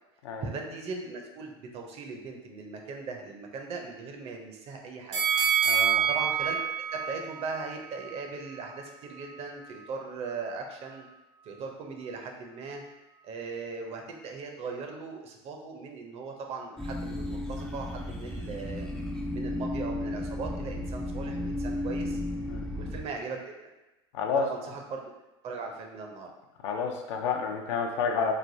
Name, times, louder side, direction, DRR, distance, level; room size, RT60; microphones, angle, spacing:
voice 1, 0.4-5.3 6.1-11.0 11.5-12.8 13.2-18.9 19.3-22.2 22.8-23.7 24.4-25.0 25.4-26.3, right 4 dB, 45° right, 2 dB, 0.6 m, -39 dB
sound 1, 5.1-8.2 8.6-8.7, right 8 dB, 90° right, 0.9 m, -27 dB
voice 2, 5.6-6.1 22.5-22.7 24.1-24.4 26.6-28.3, left 5 dB, 80° left, 3 dB, 0.5 m, -29 dB
sound 2, 16.8-23.0, left 1 dB, 5° left, 0.3 m, -34 dB
3.2 x 2.2 x 2.6 m, 1.0 s
hypercardioid pair, 95°, 15 cm